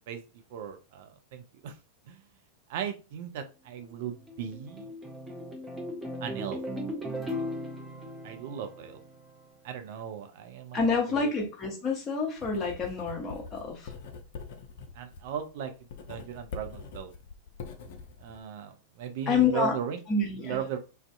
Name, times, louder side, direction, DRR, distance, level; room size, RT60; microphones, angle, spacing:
voice 1, 0.5-1.7 2.1-2.2 2.7-5.0 6.2-6.6 8.2-9.0 9.6-11.3 14.9-15.7 16.1-17.1 18.2-20.0 20.4-20.8, right 8 dB, 50° right, 7 dB, 0.4 m, -37 dB
sound 1, 3.8-9.4, equal, 10° right, 0.6 m, -38 dB
voice 2, 10.7-13.9 19.3-19.8 20.1-20.6, left 4 dB, 25° left, 1 dB, 0.8 m, -28 dB
Writing, 12.4-18.4, left 4 dB, 50° left, 0.4 m, -44 dB
2.5 x 2.2 x 2.4 m, 0.32 s
figure-of-eight pair, 90°, 0 cm